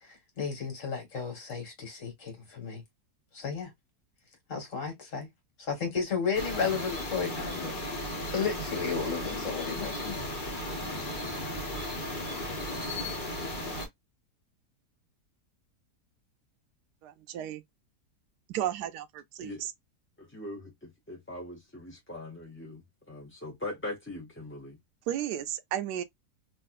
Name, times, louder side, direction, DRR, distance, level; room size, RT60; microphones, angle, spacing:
voice 1, 0.0-2.8 3.3-3.7 4.5-5.3 5.6-7.8 8.3-10.1, left 5 dB, 55° left, 1.7 m, -33 dB
sound 1, 6.3-13.9, left 1 dB, 35° left, 1.2 m, -35 dB
voice 2, 17.0-17.6 18.5-19.7 25.1-26.0, right 11 dB, 80° right, 1.1 m, -33 dB
voice 3, 20.2-24.8, left 2 dB, 15° left, 0.4 m, -41 dB
3.2 x 2.7 x 2.4 m
omnidirectional pair, 1.7 m